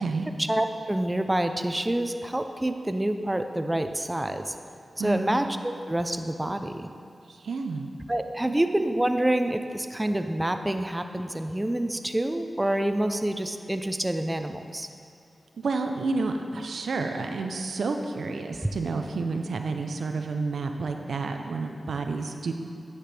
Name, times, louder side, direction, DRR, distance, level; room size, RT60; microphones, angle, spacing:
voice 1, 0.5-4.5 5.0-6.9 8.1-14.9, right 1 dB, 20° right, 7 dB, 0.5 m, -27 dB
voice 2, 5.0-5.3 7.3-7.9 8.5-8.6 15.6-22.5, right 3 dB, 85° right, 5 dB, 0.4 m, -30 dB
9.6 x 5.9 x 3.4 m, 2.4 s
cardioid pair, 50°, 0 cm